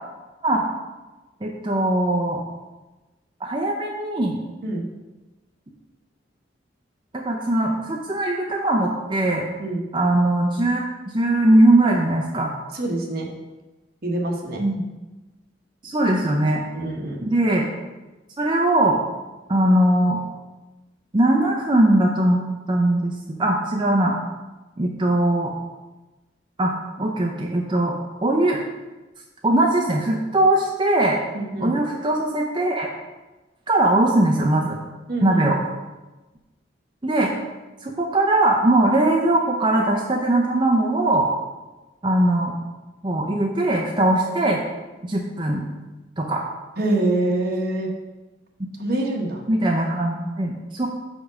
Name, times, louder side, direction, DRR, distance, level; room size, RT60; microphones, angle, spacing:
voice 1, 1.4-2.4 3.4-4.4 7.1-9.4 9.9-10.9 11.1-12.5 14.6-14.7 15.8-16.6 17.2-17.7 18.4-19.0 19.5-20.2 21.1-24.1 24.8-25.5 26.6-27.9 28.2-28.6 29.4-31.2 31.6-32.9 33.7-34.8 35.2-35.6 37.0-37.3 37.8-41.3 42.0-42.5 43.0-44.6 45.0-45.6 46.2-46.4 49.5-50.9, right 1 dB, 25° right, -1 dB, 0.6 m, -20 dB
voice 2, 12.7-13.3 14.0-14.6 16.7-17.2 31.3-31.8 35.1-35.5 46.8-47.9 48.8-49.4, right 2 dB, 55° right, 0 dB, 1.2 m, -25 dB
5.2 x 4.8 x 6.2 m, 1.1 s
head